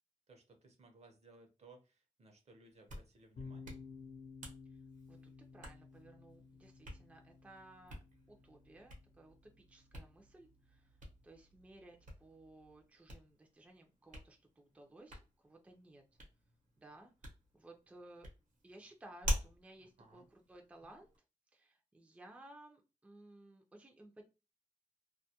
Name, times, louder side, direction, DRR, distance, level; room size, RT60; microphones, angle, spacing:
voice 1, 0.3-3.8 20.0-20.3, right 3 dB, 55° right, 4 dB, 0.7 m, -61 dB
Hands, 2.6-21.2, equal, 85° right, 0.9 m, -48 dB
sound 1, 3.3-12.8, left 4 dB, 70° left, 0.6 m, -56 dB
voice 2, 5.5-8.0 8.3-11.0 11.2-16.0 16.8-18.3 18.6-21.1 21.5-24.3, right 1 dB, 10° right, 2 dB, 0.4 m, -58 dB
2.2 x 2.1 x 2.7 m, 0.30 s
wide cardioid pair, 120°, 13 cm